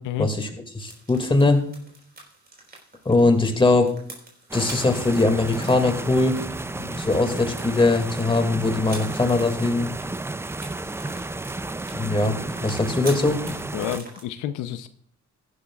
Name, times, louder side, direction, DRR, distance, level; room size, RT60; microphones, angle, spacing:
voice 1, 0.2-0.5 0.7-1.6 3.1-3.9 4.5-6.4 6.7-9.9 11.9-12.4 12.6-13.4, left 2 dB, 15° left, 5 dB, 2.2 m, -21 dB
sound 1, 0.8-14.2, right 2 dB, 30° right, 4.0 m, -46 dB
sound 2, 4.5-14.0, right 2 dB, 10° right, 0.4 m, -32 dB
voice 2, 13.7-14.9, left 11 dB, 90° left, 11 dB, 0.7 m, -29 dB
15.0 x 11.5 x 2.4 m, 0.62 s
cardioid pair, 90°, 30 cm